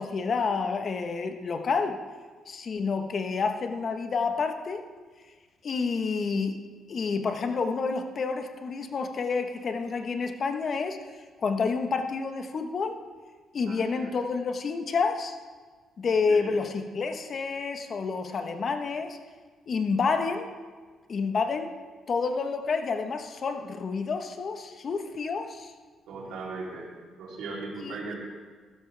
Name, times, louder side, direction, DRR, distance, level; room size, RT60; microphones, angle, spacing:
voice 1, 0.0-2.0 2.5-4.8 5.6-6.6 6.9-11.0 11.4-13.0 13.5-15.4 16.0-19.2 19.7-20.5 21.1-21.7 22.1-25.7 27.8-28.0, left 4 dB, 50° left, 6 dB, 1.1 m, -29 dB
voice 2, 13.7-14.1 16.3-16.5 26.1-26.9 27.2-28.2, right 3 dB, 85° right, -4 dB, 3.2 m, -38 dB
15.0 x 12.5 x 3.4 m, 1.5 s
cardioid pair, 90°, 0 cm